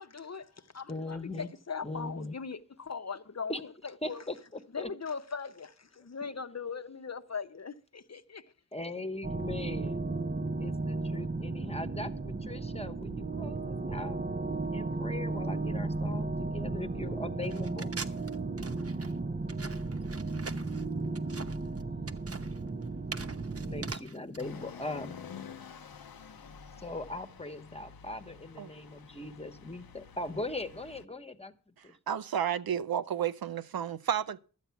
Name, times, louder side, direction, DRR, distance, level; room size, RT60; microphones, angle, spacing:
voice 1, 0.0-4.2 4.7-8.5, left 5 dB, 50° left, 0.8 m, -40 dB
voice 2, 0.9-1.5 1.8-2.4 3.5-3.6 4.0-4.9 6.2-6.4 8.7-10.1 10.6-14.2 14.7-17.9 23.6-25.2 26.8-32.0, left 2 dB, 15° left, 1.1 m, -40 dB
sound 1, 9.2-23.9, right 3 dB, 25° right, 0.6 m, -34 dB
sound 2, 17.4-24.4, right 4 dB, 45° right, 0.9 m, -43 dB
sound 3, 24.4-31.0, left 6 dB, 85° left, 0.8 m, -49 dB
voice 3, 32.1-34.4, right 9 dB, 85° right, 0.6 m, -31 dB
12.5 x 8.3 x 5.9 m
wide cardioid pair, 50°, 35 cm